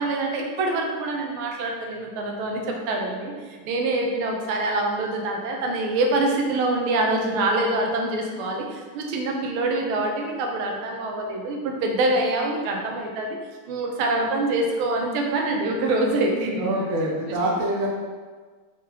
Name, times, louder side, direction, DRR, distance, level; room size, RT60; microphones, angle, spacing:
voice 1, 0.0-13.4 13.7-16.8 17.2-17.6, right 2 dB, 85° right, 1 dB, 1.5 m, -25 dB
voice 2, 16.6-17.9, right 1 dB, 60° right, -2 dB, 0.8 m, -25 dB
4.9 x 3.7 x 2.8 m, 1.4 s
omnidirectional pair, 2.3 m